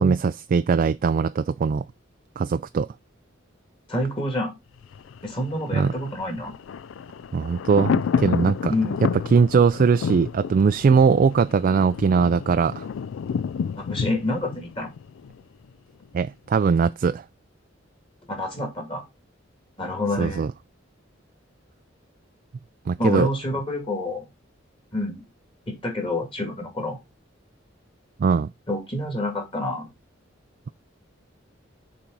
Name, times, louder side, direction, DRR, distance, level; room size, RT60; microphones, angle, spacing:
voice 1, 0.0-1.8 2.4-2.9 5.7-5.9 7.3-8.7 9.3-12.9 16.1-17.2 20.2-20.5 22.9-23.3 28.2-28.5, right 5 dB, 45° right, 0.3 m, -20 dB
voice 2, 3.9-4.5 5.2-6.5 8.7-9.1 13.8-14.9 18.3-19.0 19.8-20.4 23.0-24.3 24.9-25.3 25.7-27.0 28.7-29.9, left 1 dB, 30° left, 2.7 m, -28 dB
Thunder, 4.8-15.7 16.0-16.1, left 6 dB, 80° left, 0.4 m, -30 dB
7.0 x 3.8 x 6.0 m
head